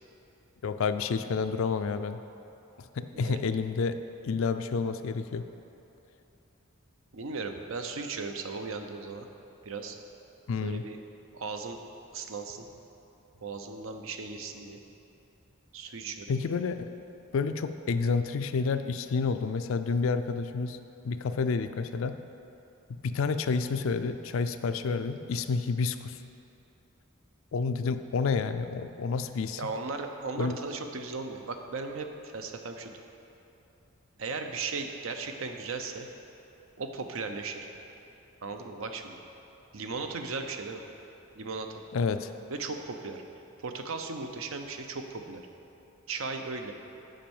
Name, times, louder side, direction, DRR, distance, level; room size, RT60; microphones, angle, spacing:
voice 1, 0.6-2.2 3.0-4.0 4.2-5.4 10.5-10.8 16.3-16.9 17.3-20.8 21.0-22.1 23.0-26.2 27.5-29.6 30.4-30.6 41.9-42.3, left 4 dB, 65° left, 10 dB, 0.4 m, -29 dB
voice 2, 7.1-9.3 9.6-10.0 10.6-11.0 11.3-11.8 12.1-12.7 13.4-14.8 15.7-16.3 29.6-32.9 34.2-36.1 36.8-37.7 38.4-39.2 39.7-40.8 41.3-41.8 42.5-43.2 43.6-45.4 46.1-46.7, right 4 dB, 65° right, 5 dB, 0.7 m, -36 dB
7.5 x 5.3 x 7.1 m, 2.9 s
head